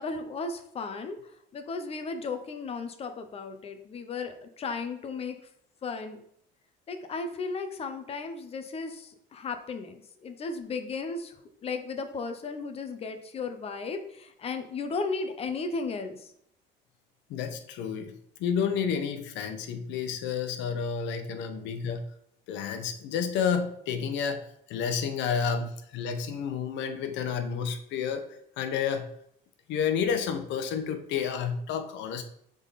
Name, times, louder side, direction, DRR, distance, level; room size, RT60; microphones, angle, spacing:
voice 1, 0.0-5.4 5.8-6.2 6.9-11.4 11.6-16.3 21.2-21.3, left 4 dB, 30° left, 7 dB, 0.8 m, -35 dB
voice 2, 17.3-18.1 18.4-22.0 22.5-24.4 24.7-28.2 28.6-29.1 29.7-32.2, left 7 dB, 75° left, 8 dB, 0.9 m, -30 dB
6.9 x 3.8 x 4.1 m, 0.70 s
cardioid pair, 135°, 19 cm